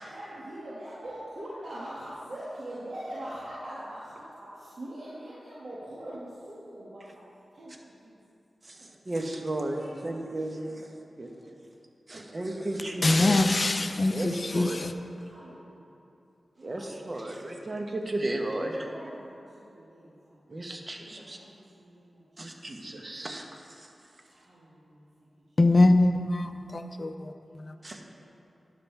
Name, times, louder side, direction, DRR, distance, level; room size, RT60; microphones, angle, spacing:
voice 1, 0.0-7.0 7.5-8.2 8.7-8.9 9.7-10.9 11.2-11.5 12.1-13.1 13.7-13.9 15.1-15.8 16.6-17.7 18.6-20.4 21.0-22.4 24.3-25.3 27.4-28.3, right 1 dB, 65° right, -10 dB, 2.2 m, -44 dB
voice 2, 8.6-11.3 12.1-13.4 14.1-14.8 16.6-18.9 20.5-21.4 22.4-23.9 27.8-28.0, right 1 dB, 40° right, 2 dB, 1.3 m, -34 dB
voice 3, 13.0-14.9 25.6-27.7, left 2 dB, 45° left, 7 dB, 0.6 m, -23 dB
13.0 x 9.8 x 3.5 m, 2.8 s
wide cardioid pair, 70°, 0 cm